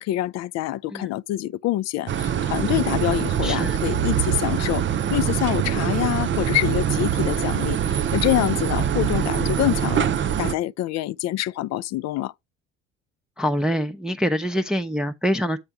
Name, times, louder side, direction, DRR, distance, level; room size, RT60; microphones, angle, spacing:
voice 1, 0.0-4.8 5.1-12.3, left 15 dB, 55° left, 0.4 m, -26 dB
sound 1, 2.1-10.5, right 9 dB, 35° right, 0.7 m, -24 dB
voice 2, 3.4-3.8 13.4-15.6, equal, ahead, 0.7 m, -25 dB
8.7 x 4.4 x 4.8 m
hypercardioid pair, 60°, 32 cm